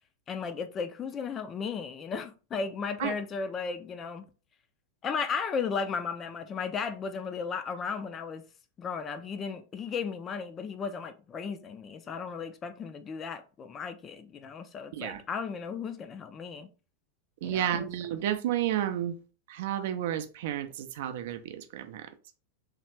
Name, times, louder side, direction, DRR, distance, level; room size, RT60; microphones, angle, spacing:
voice 1, 0.3-4.3 5.0-8.4 8.8-16.7 17.4-17.9, left 5 dB, 25° left, 0.4 m, -35 dB
voice 2, 17.4-19.2 19.5-22.1, right 11 dB, 55° right, 0.4 m, -31 dB
3.2 x 2.4 x 3.2 m
figure-of-eight pair, 90°, 0 cm